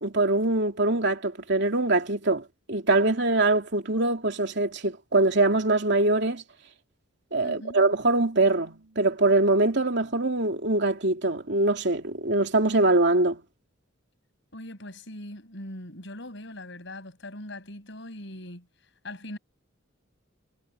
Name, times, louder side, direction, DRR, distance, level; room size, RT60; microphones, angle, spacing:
voice 1, 0.0-6.4 7.3-13.4, right 2 dB, 55° right, 3.0 m, -23 dB
voice 2, 7.4-7.8 14.5-18.7 19.0-19.4, left 1 dB, 60° left, 7.3 m, -40 dB
Keyboard (musical), 7.7-9.7, right 2 dB, 80° right, 7.2 m, -55 dB
head